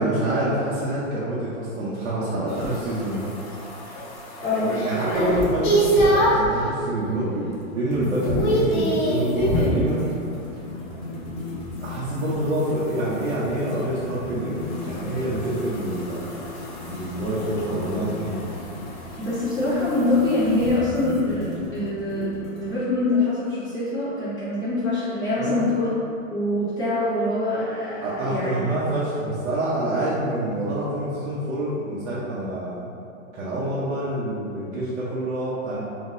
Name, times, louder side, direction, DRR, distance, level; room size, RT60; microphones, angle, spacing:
voice 1, 0.0-3.3 3.8-4.0 4.8-7.5 7.7-10.1 11.8-14.6 14.8-16.4 16.8-18.5 25.4-25.6 28.0-32.9 33.3-35.8, right 1 dB, 60° right, -9 dB, 0.8 m, -26 dB
sound 1, 2.5-6.5 7.0-7.5 7.7-9.8 12.3-20.7, right 1 dB, 35° left, 0.6 m, -27 dB
voice 2, 4.4-4.8 19.1-25.9 26.3-28.6, left 2 dB, 10° left, -14 dB, 1.2 m, -24 dB
sound 2, 7.9-22.7, left 3 dB, 75° left, 1.1 m, -36 dB
3.7 x 2.7 x 2.5 m, 2.6 s
hypercardioid pair, 150°, 41 cm